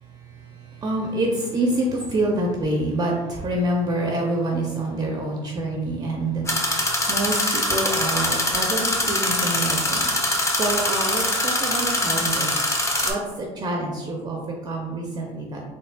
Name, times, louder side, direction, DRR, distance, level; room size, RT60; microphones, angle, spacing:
voice 1, 0.3-10.1 10.6-12.5 13.0-15.6, right 1 dB, 25° right, 0 dB, 0.6 m, -27 dB
sound 1, 6.5-13.1, left 1 dB, 15° left, 0.8 m, -23 dB
4.0 x 3.2 x 2.2 m, 1.2 s
hypercardioid pair, 80°, 16 cm